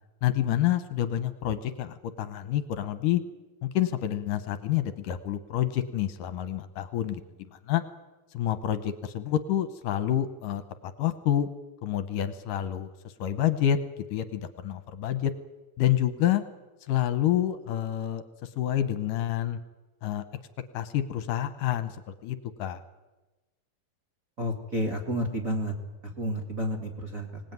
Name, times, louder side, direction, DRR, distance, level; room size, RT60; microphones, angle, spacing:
voice 1, 0.2-3.2 3.6-7.2 7.5-7.8 8.3-11.5 11.8-13.8 14.1-15.3 15.8-16.4 16.9-19.6 20.0-20.2 20.7-22.0 22.2-22.8, left 11 dB, 70° left, 12 dB, 2.4 m, -28 dB
voice 2, 24.4-25.8 26.0-27.4, equal, 30° right, 1 dB, 1.9 m, -30 dB
25.5 x 18.5 x 9.4 m, 1.1 s
omnidirectional pair, 4.2 m